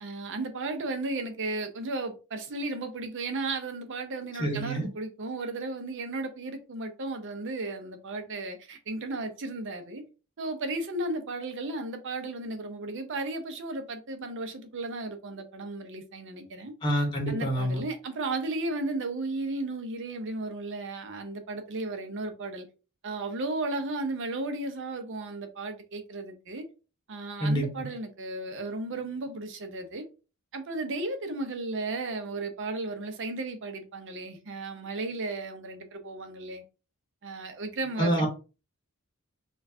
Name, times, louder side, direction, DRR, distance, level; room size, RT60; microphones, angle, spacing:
voice 1, 0.0-10.0 10.4-16.7 17.3-22.7 23.0-26.6 27.1-30.0 30.5-36.6 37.2-38.3, right 2 dB, 55° right, 0.7 m, -34 dB
voice 2, 4.4-4.9 16.8-17.8 27.4-27.9 38.0-38.3, right 1 dB, 20° left, 0.9 m, -27 dB
4.3 x 2.3 x 2.7 m
head